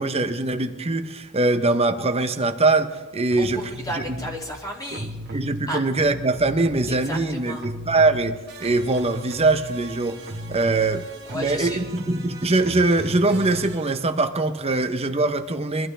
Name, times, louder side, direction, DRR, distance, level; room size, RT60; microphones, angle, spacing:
voice 1, 0.0-4.0 5.3-11.1 11.3-15.9, right 2 dB, 30° right, 0.9 m, -22 dB
sound 1, 3.3-4.4 4.9-7.3 7.6-13.9, equal, 50° right, 1.6 m, -36 dB
voice 2, 3.4-5.4 5.7-5.8 6.9-7.7 11.3-11.8, equal, 15° left, 2.6 m, -33 dB
23.5 x 12.5 x 3.4 m
head